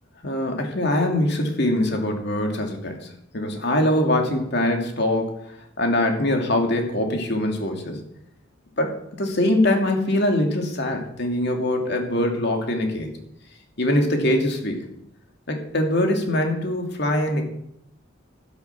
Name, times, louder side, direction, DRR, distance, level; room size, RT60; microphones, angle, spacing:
voice 1, 0.2-5.4 5.8-8.0 8.8-13.1 13.8-14.8 15.5-17.4, left 1 dB, 55° left, 3 dB, 2.7 m, -23 dB
12.0 x 10.5 x 7.0 m, 0.76 s
head